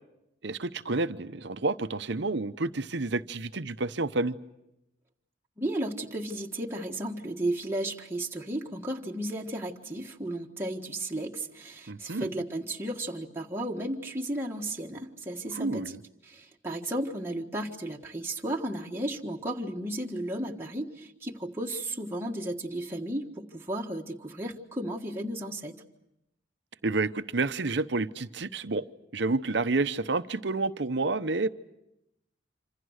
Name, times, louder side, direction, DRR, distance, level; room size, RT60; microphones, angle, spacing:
voice 1, 0.4-4.4 11.9-12.3 15.5-16.0 26.8-28.8 29.1-31.5, right 3 dB, 60° right, 0.9 m, -29 dB
voice 2, 5.6-15.8 16.2-25.8, right 1 dB, 10° right, 1.5 m, -34 dB
27.0 x 26.5 x 6.5 m
head